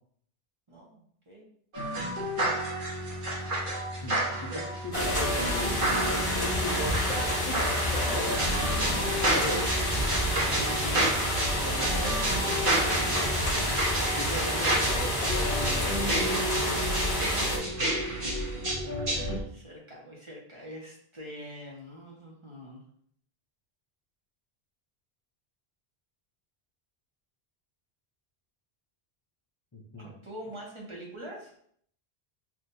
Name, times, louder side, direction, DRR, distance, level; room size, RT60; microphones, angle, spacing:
voice 1, 0.7-1.4 7.8-9.3 18.6-22.8 30.0-31.5, equal, 30° right, -3 dB, 1.1 m, -45 dB
sound 1, 1.7-19.4, right 1 dB, 55° right, 1.2 m, -30 dB
voice 2, 4.0-7.8 8.1-8.4 9.3-9.6 10.4-11.1 11.6-12.2 12.7-13.8 14.1-15.5 17.2-17.7 29.7-30.1, left 1 dB, 25° left, -4 dB, 0.4 m, -38 dB
sound 2, 4.9-17.6, left 1 dB, 55° left, 1.5 m, -29 dB
5.8 x 2.6 x 2.7 m, 0.63 s
omnidirectional pair, 1.1 m